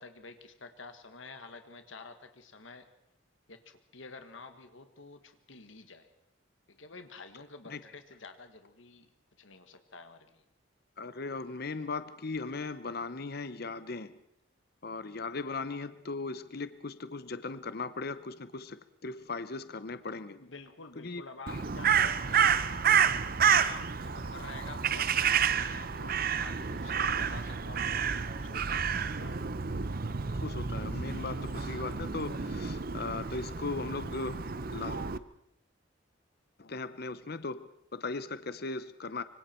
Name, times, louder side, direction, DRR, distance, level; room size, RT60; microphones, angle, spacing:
voice 1, 0.0-2.9 3.5-6.1 6.7-9.1 9.4-10.4 20.3-22.6 23.1-23.3 23.6-28.1 28.4-29.4, left 3 dB, 75° left, 8 dB, 1.7 m, -49 dB
voice 2, 11.0-14.2 14.8-20.4 21.0-21.2 30.3-35.1 36.6-39.2, left 3 dB, 50° left, 13 dB, 0.8 m, -38 dB
Crow, 21.5-35.2, right 7 dB, 45° right, 0.8 m, -30 dB
25.5 x 25.0 x 4.5 m, 0.77 s
head